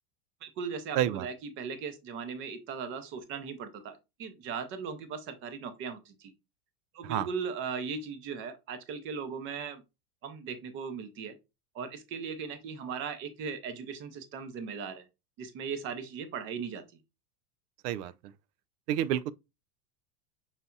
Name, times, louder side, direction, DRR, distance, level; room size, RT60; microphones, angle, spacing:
voice 1, 0.4-6.3 6.9-9.8 10.2-11.3 11.7-15.1 15.4-16.8, right 6 dB, 25° right, 0.6 m, -38 dB
voice 2, 18.9-19.3, right 11 dB, 85° right, 0.5 m, -28 dB
5.7 x 4.0 x 2.3 m
supercardioid pair, 165°, 46 cm